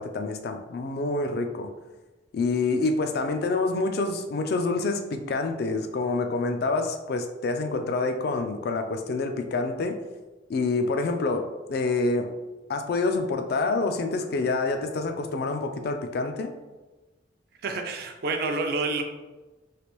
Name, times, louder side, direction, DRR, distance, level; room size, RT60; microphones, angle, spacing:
voice 1, 0.0-1.7 2.3-10.0 10.5-12.3 12.7-16.5, left 3 dB, 55° left, 6 dB, 0.3 m, -27 dB
voice 2, 17.6-19.0, right 3 dB, 55° right, 4 dB, 0.4 m, -28 dB
3.2 x 2.4 x 3.0 m, 1.2 s
head